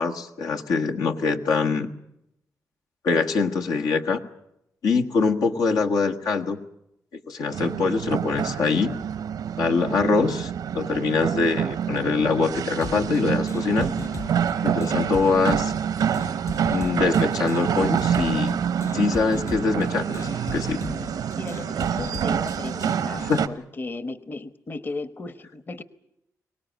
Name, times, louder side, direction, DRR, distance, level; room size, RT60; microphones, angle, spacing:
voice 1, 0.0-1.9 3.0-4.2 4.8-6.6 7.1-8.9 9.6-13.9 14.6-15.7 16.7-18.6 18.9-20.8 23.3-23.4, left 4 dB, 80° left, 2 dB, 1.5 m, -24 dB
piersaro-cerami, 7.5-23.5, right 8 dB, 85° right, 0.8 m, -27 dB
sound 1, 12.8-23.5, left 3 dB, 55° left, 7.4 m, -38 dB
voice 2, 21.4-25.8, left 3 dB, 35° left, 13 dB, 1.1 m, -36 dB
23.5 x 18.5 x 9.2 m, 0.82 s
cardioid pair, 85°, 6 cm